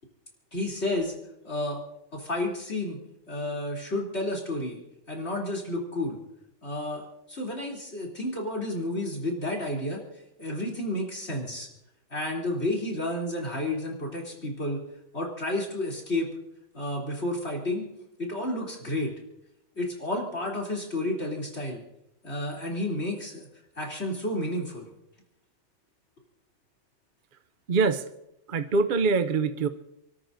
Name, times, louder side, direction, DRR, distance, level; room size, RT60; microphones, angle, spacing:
voice 1, 0.5-1.1 1.4-1.8 2.1-3.0 3.3-4.8 5.1-6.2 6.6-10.0 10.4-11.7 12.1-14.8 15.1-16.3 16.7-17.9 18.2-19.1 19.8-21.8 22.2-23.4 23.8-24.9, left 1 dB, 50° left, -2 dB, 3.6 m, -31 dB
voice 2, 27.7-28.0 28.5-29.7, right 4 dB, 50° right, 10 dB, 0.7 m, -24 dB
29.5 x 13.0 x 2.7 m, 0.85 s
omnidirectional pair, 1.4 m